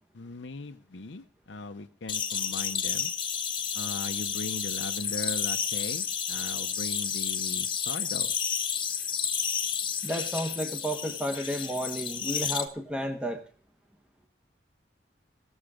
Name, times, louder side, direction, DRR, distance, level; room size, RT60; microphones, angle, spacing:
voice 1, 0.1-3.1 3.7-8.3, left 3 dB, 80° left, 6 dB, 0.7 m, -39 dB
sound 1, 2.1-12.6, left 7 dB, 25° left, 1.0 m, -31 dB
voice 2, 10.0-13.4, equal, 5° right, 4 dB, 1.0 m, -32 dB
19.0 x 7.2 x 5.0 m, 0.42 s
head